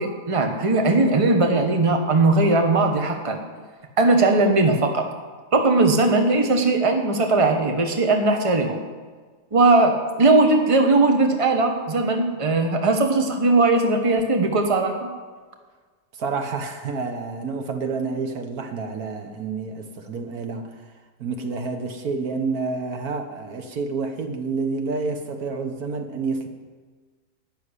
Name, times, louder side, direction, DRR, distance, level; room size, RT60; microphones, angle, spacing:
voice 1, 0.0-3.4 4.0-5.0 5.5-8.8 9.5-9.9 10.2-15.1, right 2 dB, 20° right, 4 dB, 1.2 m, -19 dB
voice 2, 16.1-20.8 21.2-26.5, right 4 dB, 70° right, 6 dB, 1.6 m, -29 dB
12.0 x 7.1 x 9.8 m, 1.4 s
omnidirectional pair, 1.7 m